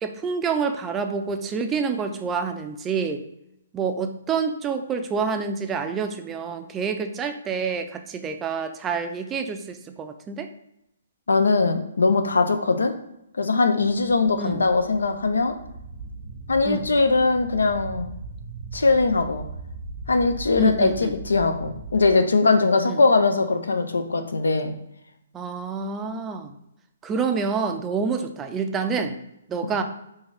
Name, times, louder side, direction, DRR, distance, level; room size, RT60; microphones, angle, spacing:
voice 1, 0.0-3.2 3.7-10.5 14.4-14.6 16.6-16.9 20.6-21.1 22.9-23.0 25.3-26.5 27.0-29.2 29.5-29.8, right 5 dB, 15° right, 6 dB, 0.4 m, -27 dB
voice 2, 11.3-12.9 13.4-15.5 16.5-18.1 18.7-19.4 20.1-24.7, left 3 dB, 85° left, 7 dB, 0.5 m, -21 dB
sound 1, 13.8-22.1, right 3 dB, 85° right, 0.9 m, -39 dB
3.7 x 2.6 x 3.1 m, 0.82 s
hypercardioid pair, 140°, 0 cm